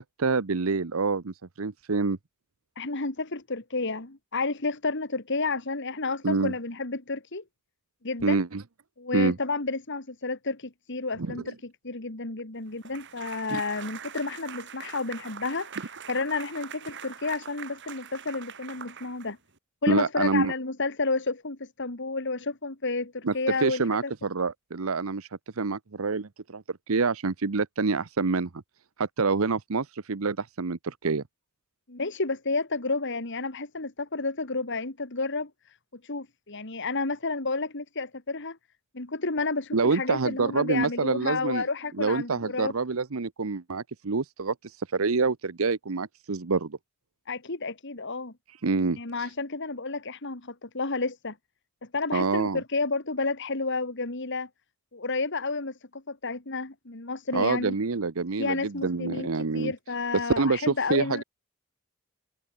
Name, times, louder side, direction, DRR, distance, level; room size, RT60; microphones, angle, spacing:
voice 1, 0.0-2.2 6.2-6.5 8.2-8.6 9.1-9.4 11.2-11.4 13.5-13.6 19.9-20.5 23.2-23.3 23.6-25.3 25.6-28.5 29.0-31.2 39.7-41.6 42.0-46.8 48.6-49.3 52.1-52.6 57.3-59.7 60.1-61.2, right 4 dB, 80° right, 0.9 m, -27 dB
voice 2, 2.8-7.4 8.0-8.4 9.0-19.4 19.8-24.1 31.9-35.5 36.0-38.6 38.9-42.7 47.3-48.3 49.0-51.4 51.9-54.5 54.9-57.7 58.4-59.3 59.5-61.2, left 3 dB, 60° left, 2.5 m, -31 dB
sound 1, 12.8-19.6, right 8 dB, 60° right, 5.0 m, -43 dB
head